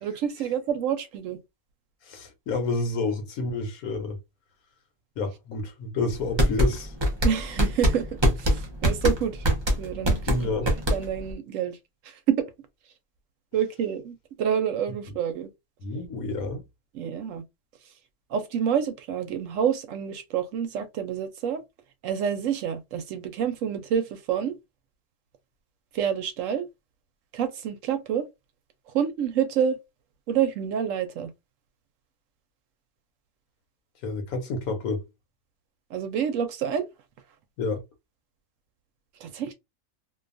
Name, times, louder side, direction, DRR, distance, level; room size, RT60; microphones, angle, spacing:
voice 1, 0.0-1.4 7.2-8.1 8.4-9.4 9.8-10.2 10.9-11.8 12.3-12.4 13.5-15.5 16.9-17.4 18.3-21.6 22.0-24.5 25.9-26.7 27.3-28.2 28.9-29.8 30.3-31.3 35.9-36.9 39.2-39.5, right 8 dB, 70° right, 0.9 m, -27 dB
voice 2, 2.0-4.2 5.2-6.9 10.2-10.8 15.8-16.6 34.0-35.0 37.6-37.8, left 3 dB, 80° left, 1.1 m, -29 dB
sound 1, 6.1-11.3, equal, 30° right, 0.5 m, -23 dB
2.6 x 2.3 x 2.5 m
omnidirectional pair, 1.5 m